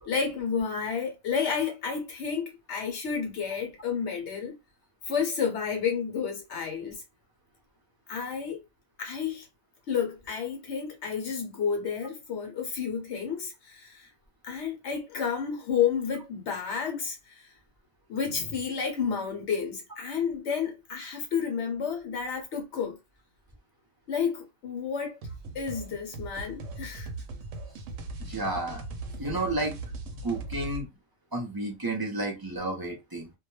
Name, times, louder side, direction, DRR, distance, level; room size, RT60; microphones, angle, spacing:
voice 1, 0.1-4.5 5.1-7.0 8.1-8.6 9.0-9.5 9.9-14.1 14.4-17.5 18.1-23.0 24.1-25.2 25.5-27.1, left 6 dB, 70° left, 0.9 m, -31 dB
sound 1, 25.2-30.8, right 2 dB, 80° right, 0.9 m, -39 dB
voice 2, 28.2-28.8 29.2-29.8 30.2-30.9 31.3-33.3, right 2 dB, 30° right, 0.4 m, -31 dB
2.2 x 2.1 x 3.1 m
omnidirectional pair, 1.3 m